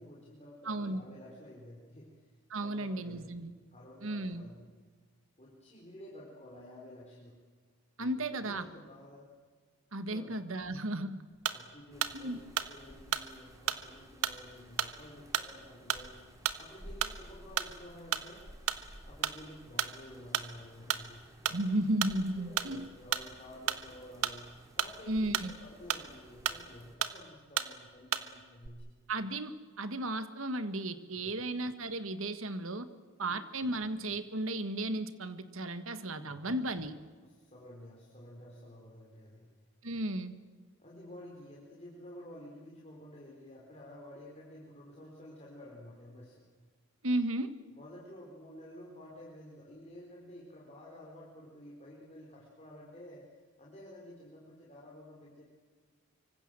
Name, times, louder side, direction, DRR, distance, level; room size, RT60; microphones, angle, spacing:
voice 1, 0.0-3.3 3.7-4.7 5.4-7.4 8.0-9.3 10.0-10.4 11.5-18.5 19.0-21.6 22.4-28.9 31.1-31.3 33.2-33.7 36.2-36.6 37.2-39.5 40.8-46.5 47.7-53.3 53.6-55.4, left 1 dB, 30° left, -3 dB, 4.3 m, -51 dB
voice 2, 0.6-1.0 2.5-3.5 4.0-4.4 8.0-8.7 9.9-11.2 12.1-12.4 21.5-22.9 25.1-25.5 29.1-32.9 33.2-36.9 39.8-40.3 47.0-47.5, right 1 dB, 65° right, 11 dB, 1.7 m, -34 dB
sound 1, 11.4-11.7 12.0-12.2 12.6-13.3 13.7-13.9 14.2-14.4 14.8-15.0 15.3-15.5 15.9-16.1 16.4-16.6 17.0-17.3 17.6-17.8 18.1-18.3 18.7-18.8 19.2-19.4 19.8-20.0 20.3-20.5 20.9-21.1 21.4-21.6 22.0-22.2 22.6-22.7 23.1-23.3 23.7-23.8 24.2-25.0 25.3-25.5 25.9-26.1 26.4-26.7 27.0-27.2 27.6-27.7 28.1-28.3 28.6-28.7, right 9 dB, 90° right, 1.5 m, -33 dB
sound 2, 11.9-27.0, equal, 15° right, 3.2 m, -55 dB
25.0 x 25.0 x 7.6 m, 1.5 s
head